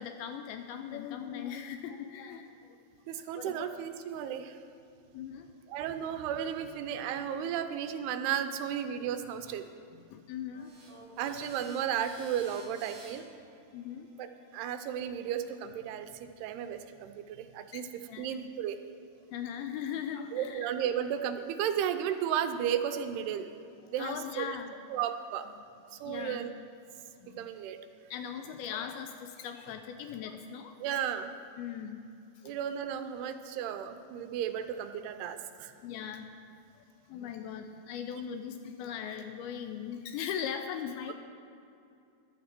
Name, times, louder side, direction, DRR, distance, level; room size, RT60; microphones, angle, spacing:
voice 1, 0.0-2.8 3.1-3.7 5.1-5.5 9.9-10.7 11.1-11.2 13.7-14.1 17.7-17.8 18.1-18.4 19.3-20.7 24.0-24.7 25.9-26.4 27.2-27.5 28.1-31.0 31.6-32.1 32.4-32.5 33.4-33.6 35.8-36.4 36.8-41.1, left 8 dB, 80° left, 7 dB, 2.3 m, -40 dB
voice 2, 3.1-4.6 5.7-9.7 11.2-13.3 14.2-14.3 14.5-17.9 18.2-18.8 20.3-23.5 23.9-24.5 24.9-25.5 25.9-26.5 27.4-27.8 30.8-31.3 32.4-35.7, right 9 dB, 80° right, 8 dB, 2.6 m, -34 dB
sound 1, 10.5-15.7, right 2 dB, 30° right, 3.5 m, -54 dB
14.0 x 11.5 x 4.4 m, 2.5 s
omnidirectional pair, 4.7 m